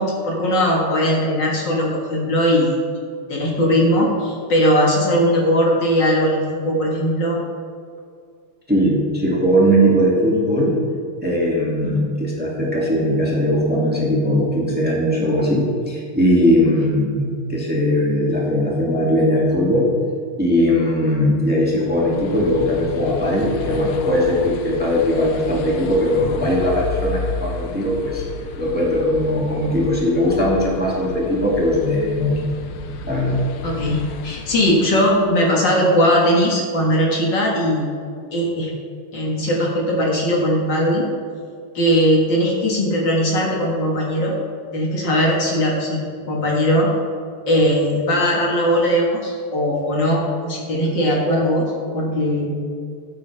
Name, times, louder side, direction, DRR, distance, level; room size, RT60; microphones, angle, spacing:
voice 1, 0.0-2.8 3.3-6.4 6.7-7.4 11.8-11.9 33.6-37.9 38.3-38.7 39.1-41.1 41.7-44.4 44.7-46.0 46.3-46.9 47.5-52.6, equal, 60° left, -2 dB, 2.2 m, -19 dB
voice 2, 8.7-10.8 11.2-19.9 20.4-28.2 28.6-32.4 33.0-33.4, equal, 5° right, -5 dB, 2.0 m, -19 dB
sound 1, 21.7-35.2, left 4 dB, 80° left, 1.6 m, -32 dB
14.0 x 8.4 x 3.3 m, 2.2 s
omnidirectional pair, 2.4 m